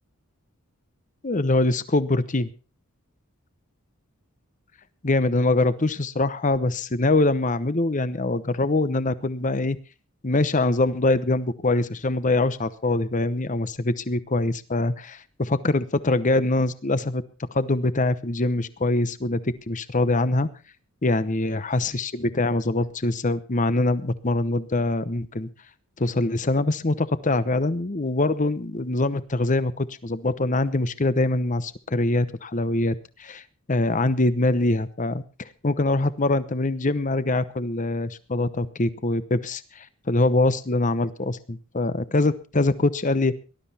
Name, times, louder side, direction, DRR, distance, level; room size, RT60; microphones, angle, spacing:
voice 1, 1.2-2.5 5.0-9.8 10.2-17.2 17.5-19.4 19.7-20.5 21.0-25.5 26.0-33.4 33.7-43.3, left 2 dB, 35° left, 14 dB, 0.9 m, -23 dB
18.5 x 12.5 x 4.2 m, 0.32 s
head